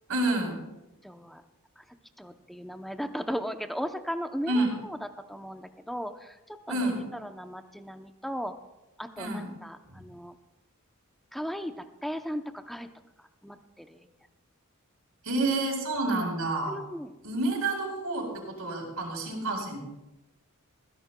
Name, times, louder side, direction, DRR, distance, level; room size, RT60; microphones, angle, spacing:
voice 1, 0.1-0.6 4.5-4.7 6.7-7.0 9.2-9.5 9.9-10.0 15.2-16.7 17.2-19.8, right 2 dB, 80° right, 0 dB, 4.4 m, -29 dB
voice 2, 1.0-1.4 1.8-1.9 2.2-5.0 5.3-6.9 7.2-8.5 9.0-10.3 11.3-11.7 12.0-12.9 13.2-14.1 16.6-17.1, equal, ahead, 7 dB, 0.6 m, -37 dB
20.5 x 16.0 x 2.3 m, 0.99 s
head